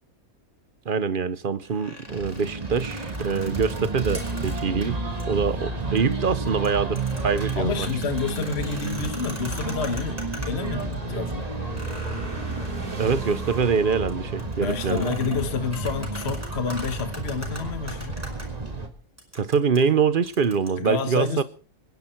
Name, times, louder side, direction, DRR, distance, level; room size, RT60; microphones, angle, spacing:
voice 1, 0.9-5.0 5.3-7.9 13.0-15.1 19.3-21.4, right 6 dB, 40° right, 0.9 m, -24 dB
sound 1, 1.6-4.9 5.2-5.3 5.8-6.1 6.5-10.9 11.3-11.4 11.7-18.5 19.2-20.7, equal, 10° right, 5.0 m, -42 dB
sound 2, 2.1-18.9, right 3 dB, 25° right, 2.0 m, -31 dB
sound 3, 7.0-18.4, right 3 dB, 80° right, 4.0 m, -44 dB
voice 2, 7.6-10.2 10.5-11.5 14.6-18.2 20.8-21.4, left 5 dB, 45° left, 1.6 m, -29 dB
26.0 x 11.0 x 4.5 m
omnidirectional pair, 1.6 m